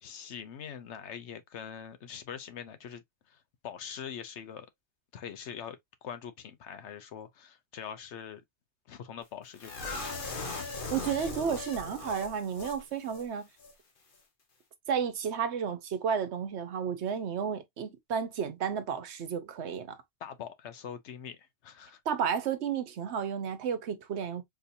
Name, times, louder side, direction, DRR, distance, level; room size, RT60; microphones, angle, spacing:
voice 1, 0.0-4.7 5.1-8.4 8.9-10.0 20.2-22.0, left 8 dB, 85° left, 1.0 m, -43 dB
sound 1, 9.6-12.8 13.1-13.2 13.6-13.7, left 3 dB, 50° left, 1.2 m, -38 dB
voice 2, 10.9-13.5 14.9-20.0 22.1-24.4, right 7 dB, 75° right, 1.0 m, -32 dB
4.4 x 2.8 x 2.6 m
omnidirectional pair, 1.1 m